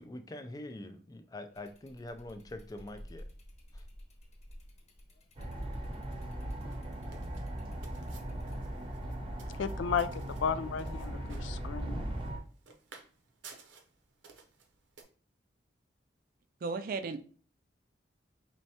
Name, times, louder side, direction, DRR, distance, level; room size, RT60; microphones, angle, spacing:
voice 1, 0.0-3.3, left 1 dB, 20° left, 0.4 m, -44 dB
sound 1, 1.5-8.6, equal, 40° left, 1.0 m, -54 dB
sound 2, 5.4-12.4, right 1 dB, 30° right, 0.7 m, -38 dB
sound 3, 6.2-15.0, right 5 dB, 80° right, 0.7 m, -57 dB
voice 2, 9.5-12.1, left 6 dB, 90° left, 0.3 m, -34 dB
voice 3, 16.6-17.3, right 4 dB, 50° right, 0.4 m, -35 dB
4.5 x 3.1 x 2.8 m
head